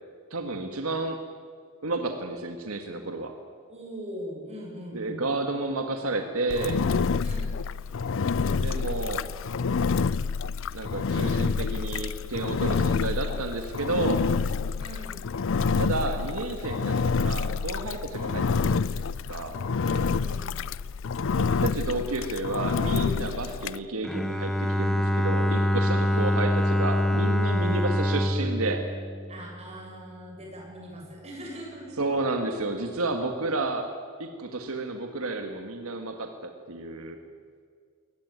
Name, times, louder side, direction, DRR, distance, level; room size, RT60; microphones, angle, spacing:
voice 1, 0.3-1.2 1.8-3.4 4.9-6.8 8.6-9.3 10.7-14.3 15.7-19.0 19.3-19.6 21.4-28.8 32.0-33.9 34.2-37.2, right 2 dB, 80° right, 5 dB, 1.8 m, -31 dB
voice 2, 3.7-5.3 7.2-7.6 14.8-15.2 18.1-18.4 19.8-20.6 26.1-26.4 27.6-27.9 29.3-32.0, equal, 30° right, -2 dB, 7.6 m, -41 dB
Engine, 6.5-23.8, left 5 dB, 60° left, 0.5 m, -28 dB
Bowed string instrument, 24.0-30.0, left 1 dB, ahead, 1.1 m, -25 dB
22.0 x 19.0 x 9.5 m, 2.1 s
head